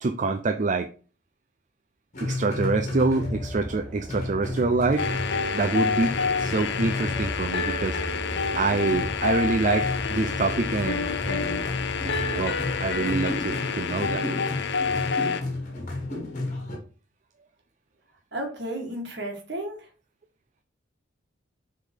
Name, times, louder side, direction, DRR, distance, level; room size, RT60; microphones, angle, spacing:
voice 1, 0.0-0.9 2.2-5.1 5.5-6.1 6.4-8.0 8.6-11.7 12.0-14.2, right 3 dB, 40° right, 7 dB, 0.5 m, -26 dB
sound 1, 2.1-3.8 4.0-5.6 6.0-7.6 7.9-16.8, left 2 dB, 40° left, 1.7 m, -33 dB
sound 2, 3.2-13.5, equal, ahead, 1.8 m, -38 dB
sound 3, 5.0-15.4, left 5 dB, 60° left, 0.6 m, -28 dB
voice 2, 18.3-19.9, right 1 dB, 60° right, 2 dB, 1.9 m, -33 dB
6.4 x 3.8 x 5.0 m, 0.38 s
head